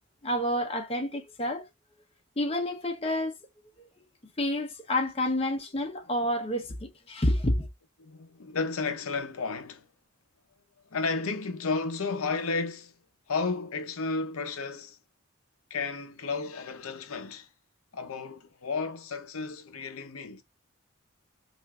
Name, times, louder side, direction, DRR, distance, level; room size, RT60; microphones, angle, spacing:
voice 1, 0.2-1.7 2.4-3.3 4.4-7.7, left 1 dB, 25° left, 0.7 m, -29 dB
voice 2, 8.0-9.8 10.9-13.0 13.3-15.0 15.7-17.5 17.9-20.4, left 4 dB, 90° left, 0.7 m, -32 dB
5.6 x 2.6 x 2.3 m
head